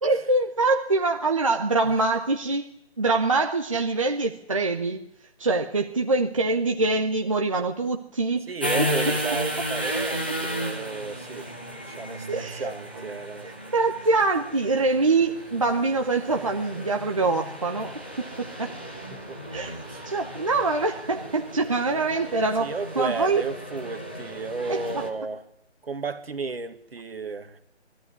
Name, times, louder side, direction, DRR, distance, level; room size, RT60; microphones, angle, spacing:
voice 1, 0.0-2.7 3.0-5.1 5.4-8.5 8.8-8.9 12.3-12.7 13.4-18.8 19.5-19.8 20.0-23.4 24.7-25.0, right 3 dB, 30° right, 0.8 m, -24 dB
voice 2, 8.5-11.5 11.9-13.5 19.1-19.4 19.7-20.0 22.6-25.4 25.8-27.6, right 4 dB, 60° right, 2.1 m, -33 dB
sound 1, 8.6-25.1, equal, 10° left, 0.7 m, -34 dB
22.5 x 13.5 x 9.6 m
hypercardioid pair, 170°, 34 cm